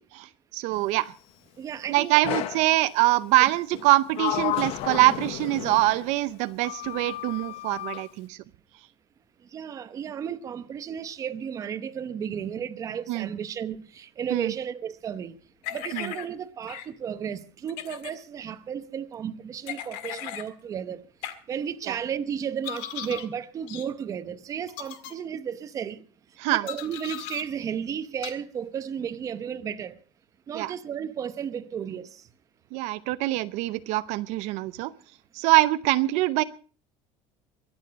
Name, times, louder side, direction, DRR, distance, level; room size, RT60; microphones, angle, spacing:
voice 1, 0.1-1.1 1.9-8.4 13.1-13.3 14.3-14.5 15.9-16.1 21.9-22.0 26.4-26.7 30.5-30.7 32.7-34.9 35.3-36.4, right 18 dB, 65° right, 0.6 m, -24 dB
voice 2, 1.6-2.2 9.4-15.4 15.7-21.0 21.5-26.1 26.5-30.0 30.5-32.3, right 8 dB, 25° right, 0.8 m, -33 dB
Sliding door, 2.2-2.7 3.7-6.1 6.6-8.0, left 13 dB, 50° left, 0.9 m, -32 dB
sound 1, 15.6-16.3 16.7-16.9 17.7-18.1 19.7-20.5 21.2-21.3 22.6-23.3 23.7-23.9 24.7-25.1 26.7-27.4 28.2-28.3, left 11 dB, 75° left, 1.8 m, -37 dB
23.0 x 8.9 x 5.2 m
cardioid pair, 175°, 13 cm